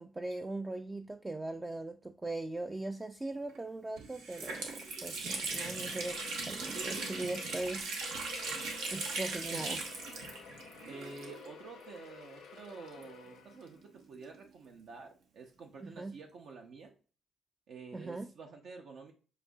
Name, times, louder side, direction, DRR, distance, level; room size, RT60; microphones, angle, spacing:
voice 1, 0.0-6.2 6.5-7.9 8.9-9.8 15.8-16.1 17.9-18.3, right 2 dB, 15° right, 0.3 m, -40 dB
Water tap faucet, 3.5-3.6 4.0-11.7 11.9-12.0 12.9-14.4, right 3 dB, 90° right, 1.0 m, -39 dB
sound 1, 5.6-13.9, left 7 dB, 90° left, 0.9 m, -52 dB
voice 2, 9.5-9.9 10.9-16.9 17.7-19.1, right 4 dB, 70° right, 0.6 m, -49 dB
6.7 x 2.6 x 2.3 m
cardioid pair, 90°, 0 cm